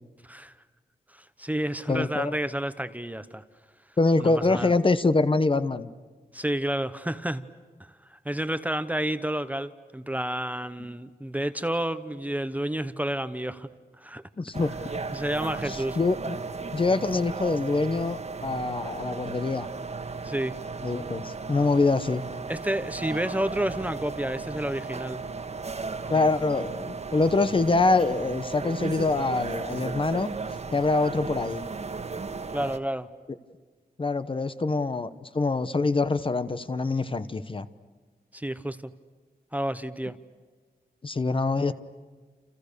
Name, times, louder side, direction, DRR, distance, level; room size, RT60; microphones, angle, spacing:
voice 1, 1.1-3.4 4.2-4.7 6.3-7.4 7.8-13.7 14.0-14.2 15.1-16.0 20.2-20.5 22.5-25.2 32.5-33.1 38.3-38.9 39.5-40.2, right 1 dB, 10° right, 12 dB, 0.9 m, -30 dB
voice 2, 1.9-2.4 4.0-5.9 14.4-14.7 15.7-16.4 16.7-19.7 20.8-22.2 26.1-30.3 30.7-31.6 34.0-37.7 41.0-41.7, left 3 dB, 30° left, 12 dB, 1.0 m, -25 dB
sound 1, 14.5-32.8, right 4 dB, 40° right, 1.5 m, -35 dB
29.5 x 29.5 x 6.8 m, 1.4 s
wide cardioid pair, 165°, 17 cm